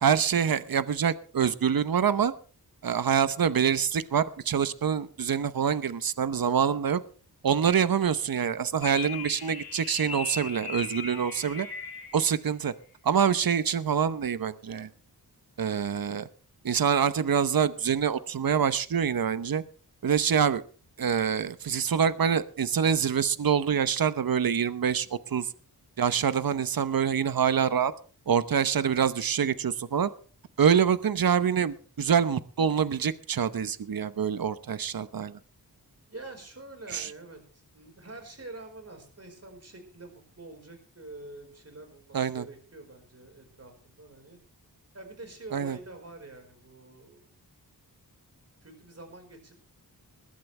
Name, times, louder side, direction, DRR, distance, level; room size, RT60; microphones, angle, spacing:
voice 1, 0.0-2.3 2.8-7.0 7.4-11.7 12.1-12.7 13.0-14.9 15.6-16.3 16.6-19.6 20.0-20.6 21.0-25.5 26.0-27.9 28.3-30.1 30.6-35.4 36.9-37.1 42.1-42.4 45.5-45.8, right 7 dB, 60° right, 14 dB, 0.9 m, -25 dB
sound 1, 8.8-12.3, left 5 dB, 65° left, 2.8 m, -38 dB
voice 2, 36.1-44.4 44.9-47.3 48.6-49.5, right 2 dB, 40° right, 5 dB, 4.6 m, -46 dB
21.0 x 11.5 x 3.3 m, 0.39 s
wide cardioid pair, 100°, 39 cm